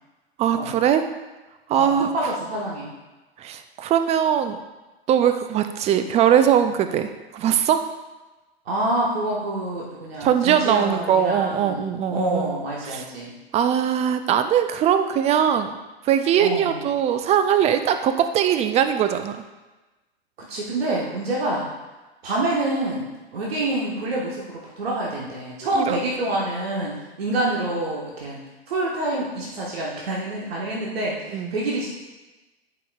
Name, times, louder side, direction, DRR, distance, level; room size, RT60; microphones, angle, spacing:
voice 1, 0.4-1.0 1.7-2.1 3.4-4.6 5.1-7.8 10.2-12.6 12.8-13.0 13.5-15.8 16.0-19.4 25.7-26.0 31.3-31.6, right 9 dB, 20° right, 9 dB, 0.4 m, -21 dB
voice 2, 1.8-2.9 8.6-13.3 16.4-16.8 20.5-21.7 22.2-28.4 28.7-31.9, right 1 dB, 70° right, -4 dB, 1.5 m, -27 dB
10.5 x 5.3 x 2.4 m, 1.1 s
figure-of-eight pair, 95°, 31 cm